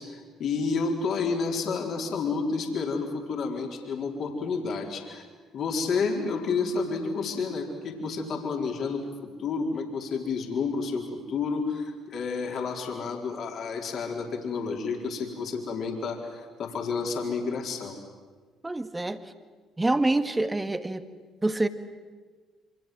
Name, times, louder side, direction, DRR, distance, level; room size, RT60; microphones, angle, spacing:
voice 1, 0.0-5.2 5.5-18.0, left 4 dB, 55° left, 1 dB, 4.2 m, -30 dB
voice 2, 18.6-19.2 19.8-21.1 21.4-21.7, right 2 dB, 15° right, 9 dB, 1.9 m, -26 dB
27.5 x 26.0 x 7.7 m, 1.4 s
hypercardioid pair, 50°, 0 cm